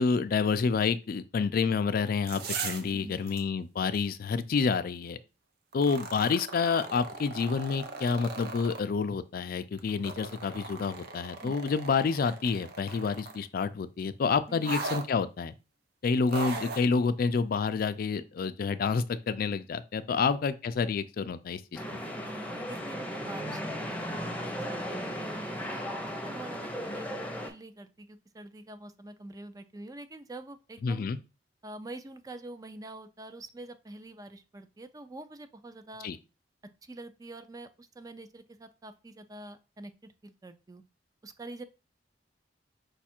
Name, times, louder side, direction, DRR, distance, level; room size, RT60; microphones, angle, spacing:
voice 1, 0.0-5.2 5.7-15.5 16.0-21.8 30.8-31.2 36.0-36.2, left 5 dB, 55° left, 0.4 m, -28 dB
sound 1, 2.1-2.9 3.3-3.4 5.7-8.8 9.8-13.4 14.6-15.1 16.3-16.9 17.8-17.9, right 4 dB, 60° right, 0.7 m, -38 dB
voice 2, 2.9-3.2 11.4-11.5 14.5-14.7 20.1-20.2 22.2-26.0 26.2-31.1 31.6-36.1 36.8-40.8 41.2-41.6, right 2 dB, 20° right, 0.4 m, -46 dB
sound 2, 21.7-27.5, equal, 10° left, 0.7 m, -36 dB
5.1 x 2.4 x 4.3 m
head